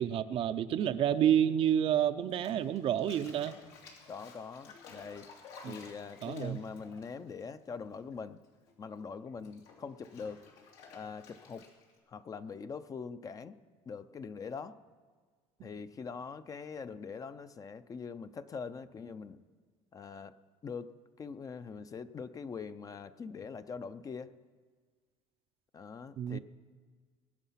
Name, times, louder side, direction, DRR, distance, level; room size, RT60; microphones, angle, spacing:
voice 1, 0.0-3.5 5.6-5.8 6.2-6.6 15.6-15.7 26.2-26.4, right 10 dB, 50° right, 11 dB, 0.6 m, -29 dB
Bathtub (filling or washing), 2.3-8.1 8.4-12.0, left 4 dB, 90° left, 3.1 m, -54 dB
voice 2, 4.1-5.3 5.6-8.4 8.8-10.4 10.9-11.7 12.1-13.5 13.9-14.8 15.6-19.4 19.9-20.3 20.6-20.9 21.2-24.3 25.7-26.4, left 5 dB, 30° left, 11 dB, 0.6 m, -43 dB
21.5 x 9.1 x 5.8 m, 1.6 s
cardioid pair, 125°, 12 cm